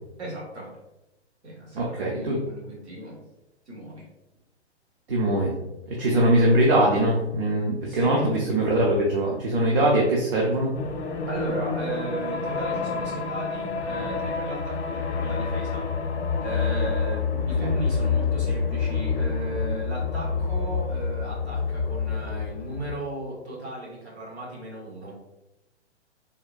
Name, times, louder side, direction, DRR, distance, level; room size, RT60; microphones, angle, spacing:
voice 1, 0.2-0.7 1.4-3.2 3.7-4.1 7.9-8.3 11.3-15.9 16.4-25.1, right 1 dB, 70° right, -3 dB, 1.4 m, -36 dB
voice 2, 1.7-2.4 5.1-5.5 5.9-10.7 17.6-17.7, right 1 dB, 50° right, -3 dB, 0.7 m, -22 dB
sound 1, 10.7-23.0, left 5 dB, 75° left, 0.5 m, -28 dB
3.5 x 2.2 x 2.4 m, 0.95 s
figure-of-eight pair, 120°, 35 cm